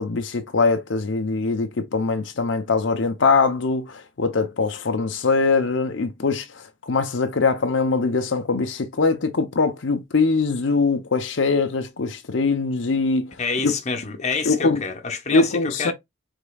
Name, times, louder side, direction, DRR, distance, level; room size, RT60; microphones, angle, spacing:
voice 1, 0.0-13.3 13.6-13.7 14.4-14.8 15.3-15.9, left 4 dB, 75° left, 0.7 m, -22 dB
voice 2, 13.4-15.9, left 4 dB, 35° left, 0.9 m, -27 dB
5.1 x 3.6 x 2.3 m
head